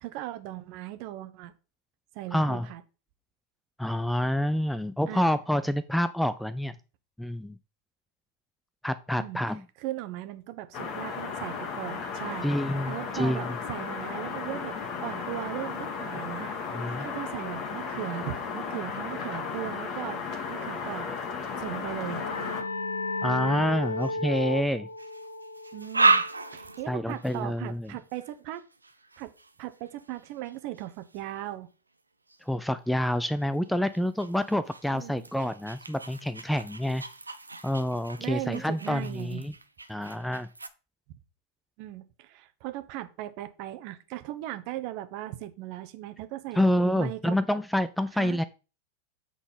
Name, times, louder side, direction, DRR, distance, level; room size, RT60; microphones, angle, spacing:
voice 1, 0.0-1.5 2.1-2.8 5.1-5.3 9.1-9.4 9.8-12.5 12.8-14.8 15.0-16.5 17.0-21.1 21.6-22.2 25.7-26.2 26.5-28.6 29.2-29.3 29.6-31.7 34.9-35.2 38.2-39.4 41.8-46.6 46.9-47.4 48.2-48.4, right 14 dB, 45° right, 10 dB, 0.9 m, -38 dB
voice 2, 2.3-2.7 3.8-6.7 7.2-7.6 8.8-9.6 12.4-13.6 16.7-17.1 23.2-24.9 26.9-27.9 32.4-37.0 37.6-39.5 39.9-40.5 46.6-48.4, left 1 dB, ahead, 14 dB, 0.4 m, -28 dB
sound 1, 10.7-22.6, left 5 dB, 35° left, 1.5 m, -35 dB
sound 2, 21.6-26.9, left 2 dB, 75° left, 0.5 m, -34 dB
sound 3, 24.0-24.5 25.0-31.5 32.3-32.5 33.1-40.7, right 3 dB, 80° right, 0.5 m, -33 dB
7.9 x 3.9 x 5.3 m, 0.33 s
figure-of-eight pair, 90°, 0 cm